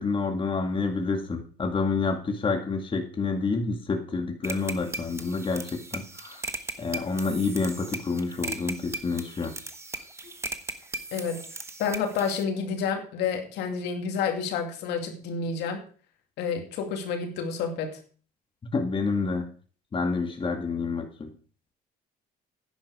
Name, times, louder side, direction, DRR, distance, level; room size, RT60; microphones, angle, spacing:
voice 1, 0.0-6.4 6.8-9.5 18.7-19.5 19.9-21.3, left 4 dB, 30° left, 4 dB, 2.0 m, -28 dB
sound 1, 4.4-12.4, right 2 dB, 15° right, 1.2 m, -38 dB
voice 2, 11.1-11.4 11.8-15.8 16.4-18.0, left 6 dB, 85° left, 4 dB, 2.4 m, -29 dB
10.5 x 10.0 x 4.8 m, 0.41 s
cardioid pair, 110°, 17 cm